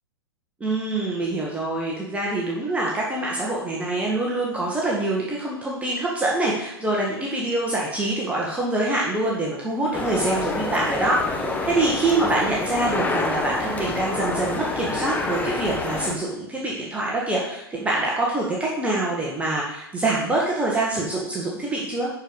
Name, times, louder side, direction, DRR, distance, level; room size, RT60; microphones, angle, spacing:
voice 1, 0.6-22.1, right 2 dB, 10° right, -4 dB, 1.6 m, -25 dB
sound 1, 9.9-16.1, left 3 dB, 10° left, 1.1 m, -27 dB
11.0 x 4.8 x 5.3 m, 0.84 s
figure-of-eight pair, 100°, 13 cm